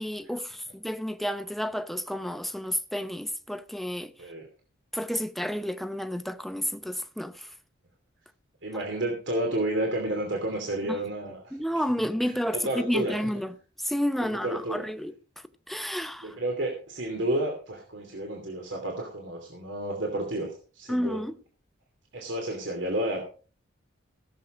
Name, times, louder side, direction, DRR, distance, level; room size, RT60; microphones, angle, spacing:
voice 1, 0.0-4.1 4.9-7.5 10.9-11.0 11.5-16.4 20.9-21.4, equal, ahead, 0.7 m, -31 dB
voice 2, 8.6-11.5 12.6-13.1 14.4-14.8 16.2-21.2 22.1-23.2, right 1 dB, 70° right, 2.8 m, -31 dB
17.0 x 7.4 x 5.1 m
head